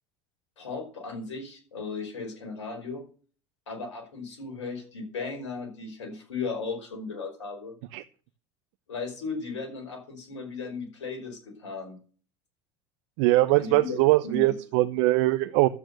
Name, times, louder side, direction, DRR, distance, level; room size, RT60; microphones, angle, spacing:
voice 1, 0.6-3.0 3.7-7.7 8.9-12.0 13.6-14.0 14.2-14.5, left 4 dB, 90° left, 4 dB, 5.3 m, -36 dB
voice 2, 13.2-15.7, right 18 dB, 65° right, 11 dB, 0.8 m, -22 dB
12.0 x 9.0 x 6.9 m, 0.41 s
hypercardioid pair, 80°, 15 cm